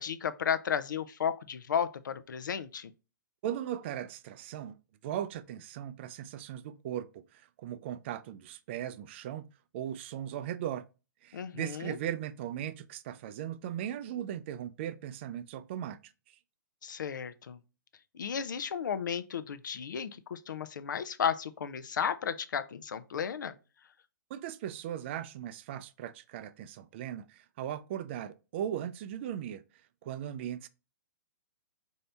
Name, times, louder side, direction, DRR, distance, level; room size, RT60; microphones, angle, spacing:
voice 1, 0.0-2.9 11.3-12.0 16.8-17.6 18.1-23.5, left 7 dB, 80° left, 0.5 m, -33 dB
voice 2, 3.4-4.8 5.0-9.4 9.7-10.8 11.2-16.1 24.3-29.6 30.0-30.7, right 10 dB, 35° right, 0.3 m, -38 dB
4.2 x 2.7 x 3.3 m
hypercardioid pair, 145°, 10 cm